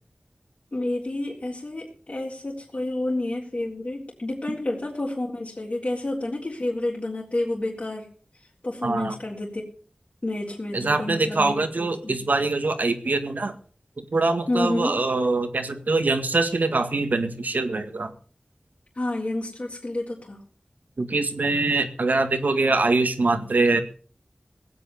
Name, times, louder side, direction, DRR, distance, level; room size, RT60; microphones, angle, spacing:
voice 1, 0.7-8.1 8.6-9.7 10.2-12.2 14.5-15.0 18.9-20.4, left 1 dB, 45° left, -4 dB, 3.7 m, -29 dB
voice 2, 8.8-9.2 10.7-13.6 14.0-18.1 21.0-23.8, right 3 dB, 80° right, 7 dB, 1.9 m, -23 dB
18.0 x 8.7 x 7.0 m, 0.42 s
wide cardioid pair, 50°, 3 cm